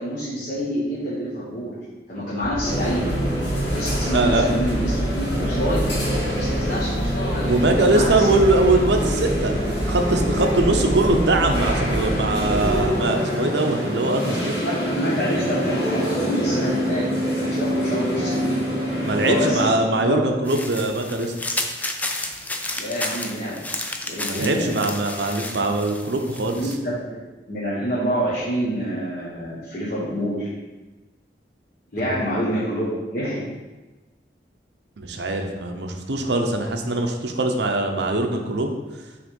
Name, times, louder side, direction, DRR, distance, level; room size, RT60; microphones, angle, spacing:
voice 1, 0.0-1.7 2.1-3.1 3.7-5.8 6.3-7.4 7.8-8.3 10.6-10.9 14.6-18.6 19.2-20.2 22.8-23.6 24.1-24.7 26.5-27.2 27.5-30.5 31.9-32.9 33.1-33.4, equal, 50° left, -9 dB, 1.3 m, -27 dB
sound 1, 2.4-12.9, equal, 35° right, 0.7 m, -28 dB
sound 2, 2.6-19.7, equal, 85° left, 2.0 m, -25 dB
voice 2, 4.1-4.5 7.4-14.5 19.0-21.3 24.3-26.6 32.1-32.2 35.0-38.7, right 2 dB, 80° right, 4 dB, 0.7 m, -22 dB
sound 3, 20.5-26.8, left 2 dB, 10° left, 0.4 m, -31 dB
6.1 x 3.3 x 5.3 m, 1.2 s
head